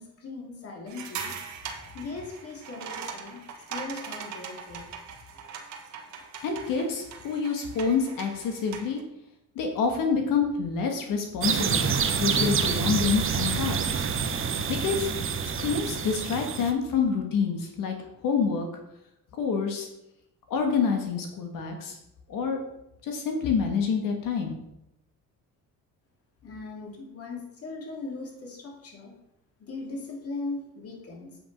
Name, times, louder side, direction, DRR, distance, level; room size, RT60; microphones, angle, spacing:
voice 1, 0.0-1.4 1.9-3.4 3.7-4.9 26.4-29.2 29.6-31.4, left 3 dB, 45° left, 1 dB, 2.6 m, -39 dB
sound 1, 0.9-9.0, right 6 dB, 60° right, 1.5 m, -41 dB
voice 2, 6.4-9.0 9.5-11.9 12.2-14.0 14.7-15.1 15.6-17.9 18.2-18.7 19.4-19.9 20.5-22.0 22.3-22.6 23.0-24.6, left 5 dB, 75° left, 3 dB, 1.6 m, -27 dB
sound 2, 11.4-16.7, right 6 dB, 40° right, 1.0 m, -27 dB
8.4 x 6.1 x 5.4 m, 0.84 s
cardioid pair, 120°, 33 cm